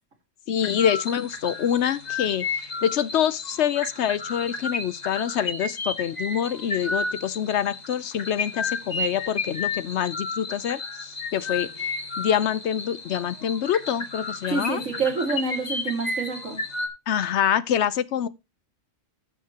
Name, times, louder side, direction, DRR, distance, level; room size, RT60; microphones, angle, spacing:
voice 1, 0.5-14.8 17.1-18.3, left 9 dB, 65° left, 0.9 m, -26 dB
sound 1, 0.6-16.9, left 3 dB, 35° left, 1.5 m, -32 dB
voice 2, 14.5-16.6, right 4 dB, 80° right, 2.7 m, -27 dB
13.5 x 6.6 x 2.8 m
omnidirectional pair, 1.3 m